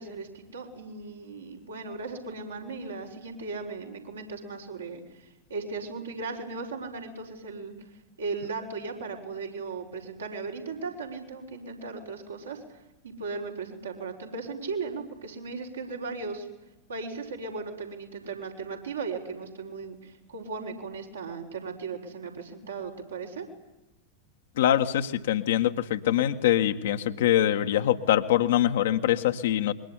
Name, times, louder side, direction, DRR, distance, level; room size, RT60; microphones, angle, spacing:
voice 1, 0.0-5.0 5.5-7.8 8.2-12.6 13.0-16.5 16.9-23.5, right 4 dB, 70° right, 0 dB, 5.5 m, -37 dB
voice 2, 24.6-29.7, left 11 dB, 60° left, 6 dB, 1.7 m, -24 dB
25.5 x 22.5 x 9.9 m, 1.0 s
figure-of-eight pair, 90°, 0 cm